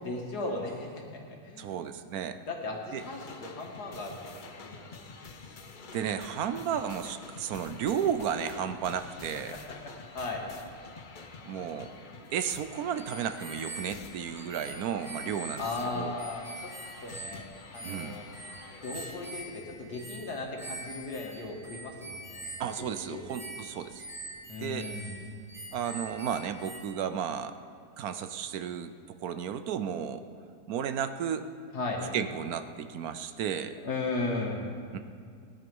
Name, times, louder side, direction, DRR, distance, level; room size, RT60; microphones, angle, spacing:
voice 1, 0.0-1.8 2.5-5.0 9.5-9.6 10.0-10.5 15.6-16.7 17.0-17.5 17.7-18.3 18.8-23.2 24.5-25.1 31.7-32.0 33.8-34.6, left 3 dB, 75° left, 0 dB, 2.5 m, -36 dB
voice 2, 1.6-2.4 2.9-3.0 5.9-9.6 11.4-11.9 12.3-15.7 15.9-16.1 17.8-18.2 22.6-24.1 24.6-24.9 25.7-27.5 28.0-30.2 30.7-31.5 32.1-33.8 34.9-35.0, right 8 dB, 70° right, 10 dB, 1.1 m, -33 dB
sound 1, 3.0-19.3, left 4 dB, 40° left, 0.7 m, -48 dB
sound 2, 12.4-26.8, right 2 dB, ahead, 2.1 m, -45 dB
18.5 x 11.0 x 5.4 m, 2.3 s
omnidirectional pair, 1.7 m